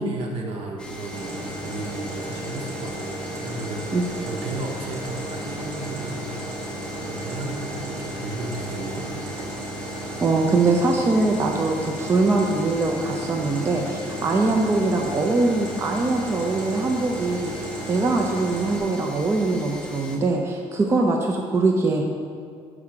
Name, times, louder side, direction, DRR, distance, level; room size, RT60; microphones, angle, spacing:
voice 1, 0.0-4.0 4.3-6.7 7.0-9.5, right 3 dB, 65° right, 0 dB, 1.3 m, -34 dB
sound 1, 0.8-20.2, left 2 dB, 10° left, 0.9 m, -40 dB
sound 2, 1.1-18.8, right 1 dB, 45° right, 2.0 m, -34 dB
voice 2, 10.2-22.0, right 3 dB, 25° right, 1 dB, 0.6 m, -22 dB
7.0 x 4.9 x 6.6 m, 2.2 s
cardioid pair, 145°, 11 cm